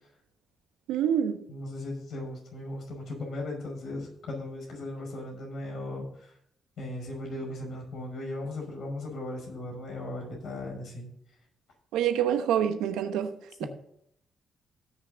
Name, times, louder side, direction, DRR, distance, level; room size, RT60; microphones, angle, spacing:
voice 1, 0.9-1.4 11.9-13.3 13.6-13.7, right 9 dB, 80° right, 1.0 m, -26 dB
voice 2, 1.5-6.4 6.8-11.1 13.6-13.7, left 1 dB, 65° left, 5.3 m, -37 dB
17.5 x 6.5 x 3.9 m
hypercardioid pair, 45°, 0 cm